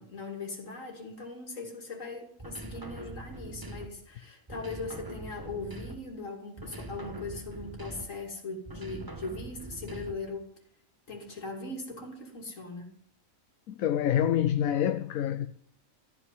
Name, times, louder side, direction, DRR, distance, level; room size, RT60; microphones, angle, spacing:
voice 1, 0.0-10.4 11.1-12.9, left 3 dB, 65° left, 3.0 m, -40 dB
sound 1, 2.4-4.1 4.5-6.2 6.6-8.3 8.7-10.4, right 1 dB, 20° right, 0.9 m, -43 dB
voice 2, 13.7-15.5, left 10 dB, 80° left, 1.1 m, -26 dB
13.5 x 5.7 x 9.6 m
omnidirectional pair, 1.4 m